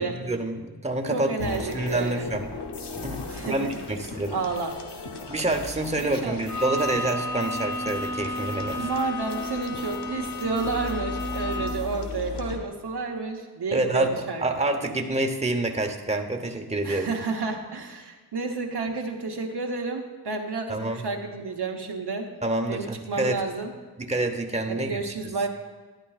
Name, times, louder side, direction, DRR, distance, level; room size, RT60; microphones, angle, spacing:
voice 1, 0.0-2.5 3.0-4.4 5.3-8.9 13.7-14.1 14.4-17.1 20.7-21.0 22.4-23.4 24.0-25.3, right 2 dB, 15° right, 4 dB, 1.0 m, -27 dB
voice 2, 1.1-2.3 3.3-3.8 4.3-4.8 6.1-6.4 8.8-14.6 16.8-22.3 22.7-23.7 24.7-25.5, right 4 dB, 75° right, 2 dB, 1.1 m, -31 dB
sound 1, 1.4-12.6, left 3 dB, 90° left, 0.9 m, -37 dB
Bowed string instrument, 6.5-12.0, left 1 dB, 65° left, 2.0 m, -32 dB
12.5 x 10.0 x 2.4 m, 1.3 s
cardioid pair, 45°, 40 cm